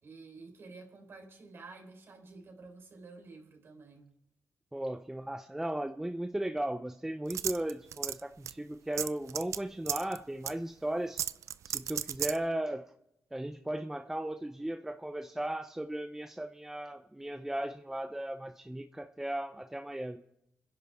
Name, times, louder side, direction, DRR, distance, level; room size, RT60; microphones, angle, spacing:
voice 1, 0.0-4.1, right 3 dB, 50° right, 3 dB, 4.0 m, -51 dB
voice 2, 4.7-11.2 11.6-12.9 13.3-20.2, right 1 dB, 10° right, 7 dB, 0.6 m, -36 dB
sound 1, 7.3-8.2 8.5-8.6 9.0-9.6 9.9-10.2 10.5-10.6 11.2-12.4, right 9 dB, 70° right, 0.5 m, -33 dB
29.5 x 10.5 x 3.5 m, 0.82 s
cardioid pair, 105°, 5 cm